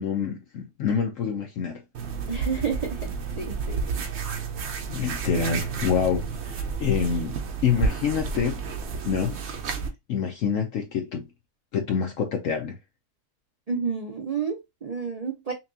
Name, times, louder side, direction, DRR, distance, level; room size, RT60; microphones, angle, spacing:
voice 1, 0.0-1.8 4.9-8.6 9.0-9.4 10.1-11.3 11.7-12.8, left 7 dB, 65° left, 0.9 m, -27 dB
sound 1, 1.9-9.9, right 5 dB, 55° right, 0.8 m, -31 dB
voice 2, 2.3-3.1 3.4-3.8 4.2-4.4 13.7-15.5, right 6 dB, 80° right, 0.3 m, -30 dB
5.7 x 2.3 x 2.6 m
omnidirectional pair, 1.7 m